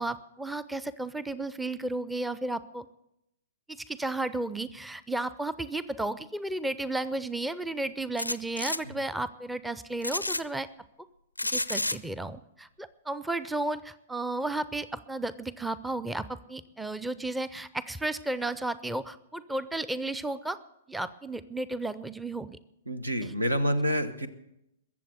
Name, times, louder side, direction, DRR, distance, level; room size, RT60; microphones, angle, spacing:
voice 1, 0.0-2.9 3.7-10.7 11.5-20.6 20.9-22.6, right 2 dB, 5° right, 16 dB, 0.5 m, -33 dB
sound 1, 8.2-8.8 10.0-10.4 11.4-12.0, left 2 dB, 90° left, 0.5 m, -30 dB
voice 2, 22.9-24.3, equal, 85° right, 13 dB, 1.1 m, -28 dB
22.0 x 7.4 x 6.7 m, 0.83 s
figure-of-eight pair, 110°, 0 cm